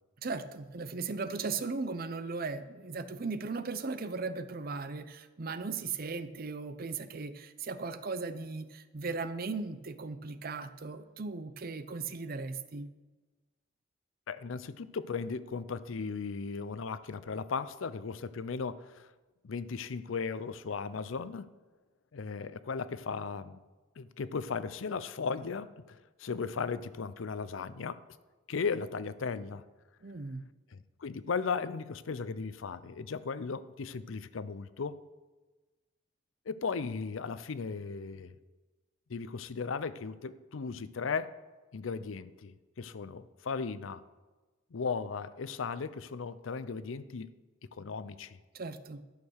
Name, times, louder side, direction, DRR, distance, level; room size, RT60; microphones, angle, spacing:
voice 1, 0.2-12.9 30.0-30.5 48.5-49.0, right 4 dB, 50° right, 11 dB, 0.7 m, -37 dB
voice 2, 14.3-19.1 19.4-21.5 22.1-23.6 24.0-28.0 28.5-29.6 30.7-35.0 36.5-38.4 39.1-41.3 41.7-44.0 44.7-47.3 47.7-48.4, left 5 dB, 90° left, 15 dB, 0.5 m, -36 dB
11.5 x 6.6 x 6.4 m, 1.2 s
head